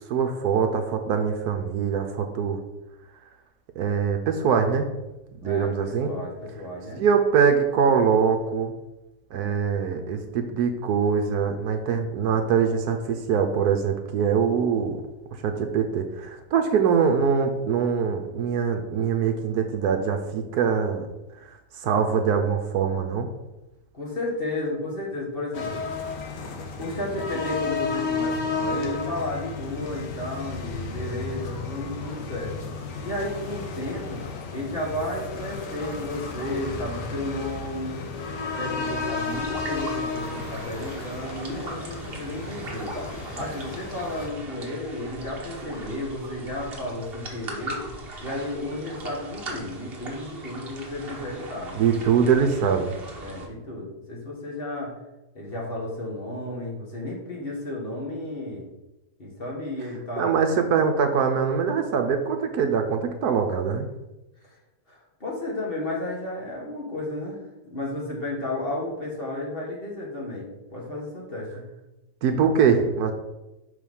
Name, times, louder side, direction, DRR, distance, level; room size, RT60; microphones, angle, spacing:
voice 1, 0.1-2.6 3.8-4.9 5.4-6.1 7.0-8.7 9.3-15.0 15.4-21.1 21.8-23.3 51.8-52.9 60.2-63.9 72.2-73.1, right 6 dB, 70° right, 5 dB, 1.1 m, -23 dB
voice 2, 5.4-7.0 23.9-25.8 26.8-32.7 33.0-34.2 34.5-38.0 38.5-42.9 43.3-47.8 48.2-51.8 53.2-54.9 55.3-58.6 59.2-60.3 64.4-64.6 64.9-67.4 67.6-71.7, left 1 dB, 35° left, -3 dB, 1.7 m, -33 dB
sound 1, 25.5-44.3, left 4 dB, 85° left, 1.6 m, -33 dB
sound 2, 39.2-53.5, right 2 dB, 40° right, 1.3 m, -39 dB
5.7 x 5.0 x 5.4 m, 1.0 s
omnidirectional pair, 1.8 m